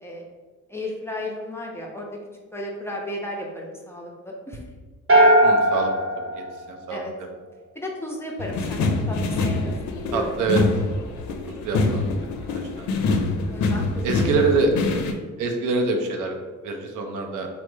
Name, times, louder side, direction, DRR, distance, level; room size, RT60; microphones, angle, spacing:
voice 1, 0.7-2.1 2.5-4.6 6.9-7.1 7.7-10.6 13.5-14.6, left 1 dB, 10° left, -1 dB, 0.4 m, -34 dB
sound 1, 5.1-7.4, right 1 dB, 45° right, 1.0 m, -19 dB
voice 2, 5.4-5.9 6.3-7.3 10.1-10.6 11.5-12.1 12.8-13.0 14.0-14.7 15.4-16.4 16.6-17.5, right 4 dB, 85° right, 3 dB, 0.5 m, -25 dB
sound 2, 8.4-15.1, left 3 dB, 70° left, 0.5 m, -25 dB
3.2 x 2.0 x 3.1 m, 1.4 s
cardioid pair, 90°, 30 cm